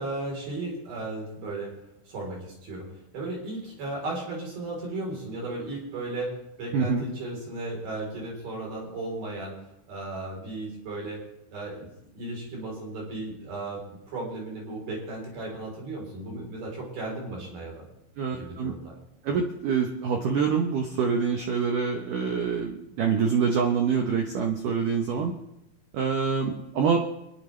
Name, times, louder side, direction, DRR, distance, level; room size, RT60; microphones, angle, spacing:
voice 1, 0.0-1.7 2.1-9.6 9.9-11.2 11.5-17.9 18.3-18.9 25.2-25.3, right 2 dB, 55° right, -2 dB, 5.4 m, -35 dB
voice 2, 6.7-7.0 18.2-18.7 19.2-25.3 25.9-27.0, right 6 dB, 90° right, 3 dB, 1.8 m, -26 dB
25.5 x 10.5 x 3.3 m, 0.87 s
omnidirectional pair, 5.3 m